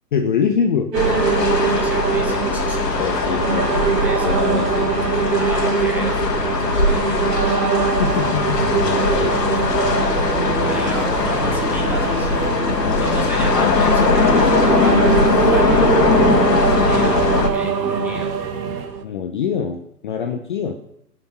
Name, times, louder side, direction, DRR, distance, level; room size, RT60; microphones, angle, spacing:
voice 1, 0.1-0.9 3.0-3.9 4.2-4.9 8.0-9.4 9.7-10.0 11.0-11.1 12.8-13.3 19.0-20.8, left 7 dB, 30° left, 6 dB, 0.6 m, -24 dB
sound 1, 0.9-17.5, left 3 dB, 80° left, 1.7 m, -19 dB
sound 2, 0.9-19.0, right 6 dB, 85° right, 1.2 m, -23 dB
voice 2, 1.7-3.4 3.9-4.4 5.4-7.6 10.6-12.3 13.0-15.9 16.2-17.2 17.5-18.3, right 2 dB, 5° right, -1 dB, 0.8 m, -32 dB
sound 3, 7.9-18.9, right 5 dB, 25° right, 1.4 m, -34 dB
14.5 x 6.0 x 4.4 m, 0.75 s
hypercardioid pair, 135°, 48 cm